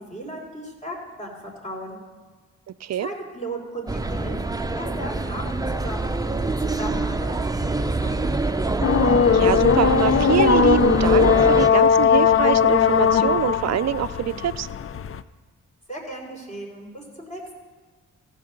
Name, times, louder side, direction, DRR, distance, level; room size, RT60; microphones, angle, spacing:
voice 1, 0.0-2.0 3.0-4.4 4.7-8.3 15.9-17.4, right 1 dB, 20° left, -1 dB, 3.9 m, -36 dB
sound 1, 3.9-11.7, right 2 dB, 10° right, 0.6 m, -26 dB
sound 2, 8.8-15.2, left 7 dB, 40° left, 0.5 m, -19 dB
voice 2, 9.3-14.7, right 11 dB, 55° right, 16 dB, 0.5 m, -24 dB
15.0 x 5.1 x 6.6 m, 1.4 s
supercardioid pair, 40°, 33 cm